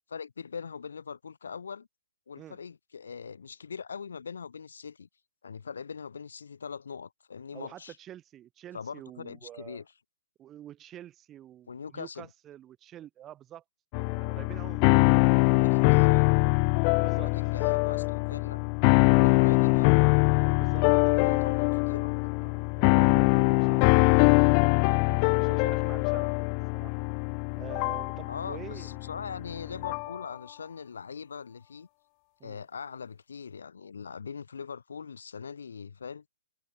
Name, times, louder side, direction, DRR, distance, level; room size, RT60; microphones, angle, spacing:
voice 1, 0.1-1.9 2.3-5.1 5.4-7.9 8.7-9.8 11.7-12.3 15.5-16.4 17.1-18.6 19.0-20.1 20.9-22.5 28.3-31.9 32.4-36.2, left 6 dB, 80° left, 1.2 m, -41 dB
voice 2, 7.5-9.8 10.4-13.6 14.0-15.5 16.9-17.3 19.1-19.6 20.5-21.6 22.4-24.2 25.4-27.0 27.6-28.9 32.4-32.6, right 12 dB, 15° right, 4.9 m, -47 dB
sound 1, 13.9-30.2, left 40 dB or more, 25° left, 0.3 m, -23 dB
hypercardioid pair, 165°, 0 cm